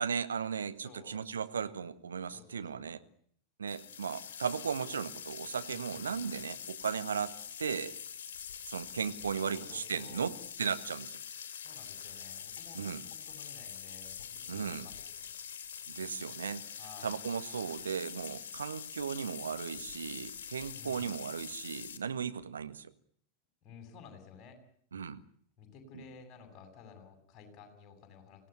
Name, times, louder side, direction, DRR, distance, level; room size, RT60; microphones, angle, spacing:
voice 1, 0.0-3.0 3.6-8.0 8.6-11.2 12.7-13.0 14.5-14.9 15.9-22.9 24.9-25.2 25.9-26.0, right 6 dB, 70° right, 10 dB, 1.6 m, -36 dB
voice 2, 0.8-1.2 2.3-3.0 5.7-6.2 9.5-10.3 11.6-15.0 16.8-17.1 20.7-21.1 23.6-24.6 25.6-28.5, left 6 dB, 35° left, 6 dB, 7.8 m, -54 dB
sound 1, 3.7-22.0, left 8 dB, 60° left, 2.9 m, -45 dB
25.5 x 17.5 x 9.7 m, 0.64 s
figure-of-eight pair, 90°, 0 cm